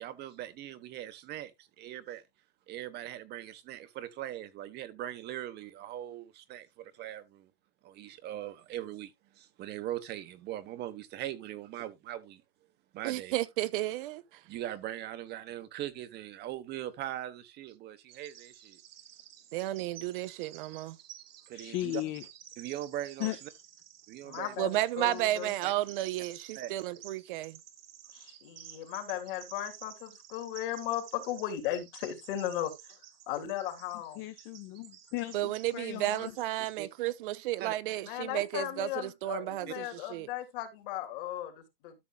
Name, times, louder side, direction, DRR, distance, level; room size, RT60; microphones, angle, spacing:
voice 1, 0.0-2.2 2.7-7.5 7.8-12.4 12.9-13.3 14.4-18.8 21.5-22.0 22.6-23.5 24.1-24.5 25.6-25.7 26.5-26.7 36.8-36.9 37.6-37.7 39.7-39.8, right 13 dB, 35° right, 1.1 m, -40 dB
voice 2, 13.0-14.2 19.5-21.0 24.6-27.6 35.3-40.3, right 15 dB, 60° right, 0.8 m, -33 dB
Bird vocalization bird call bird song, 18.1-36.9, right 11 dB, 80° right, 1.6 m, -52 dB
voice 3, 21.5-22.2 23.2-23.4 34.2-36.3, left 17 dB, 45° left, 0.9 m, -36 dB
voice 4, 24.2-25.5 28.1-32.7 33.3-34.2 38.0-41.9, left 12 dB, 65° left, 3.1 m, -36 dB
13.0 x 6.8 x 2.3 m
supercardioid pair, 130°, 29 cm